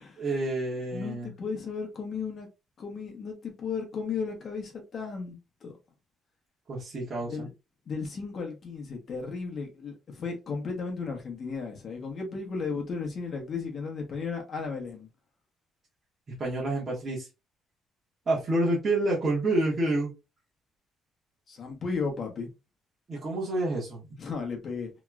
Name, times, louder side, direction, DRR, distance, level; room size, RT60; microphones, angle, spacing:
voice 1, 0.2-1.3 6.7-7.5 16.4-17.3 18.3-20.1 23.1-24.0, right 2 dB, 30° right, 1.1 m, -28 dB
voice 2, 0.9-2.5 2.8-5.8 7.3-7.5 7.9-15.1 21.5-22.5 24.2-24.9, left 5 dB, 40° left, 0.9 m, -35 dB
3.0 x 2.8 x 2.3 m
cardioid pair, 155°, 0 cm